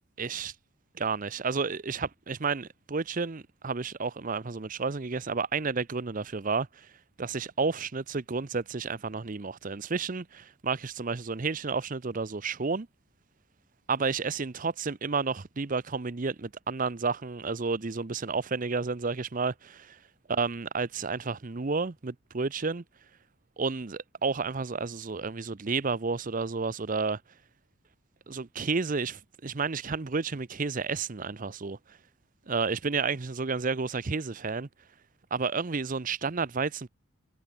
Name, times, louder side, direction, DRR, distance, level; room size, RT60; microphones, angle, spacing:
voice 1, 0.2-0.5 0.9-6.9 7.2-12.9 13.9-20.0 20.3-22.8 23.6-27.2 28.3-32.0 32.5-34.7 35.3-36.9, right 4 dB, 40° right, 0.7 m, -31 dB
head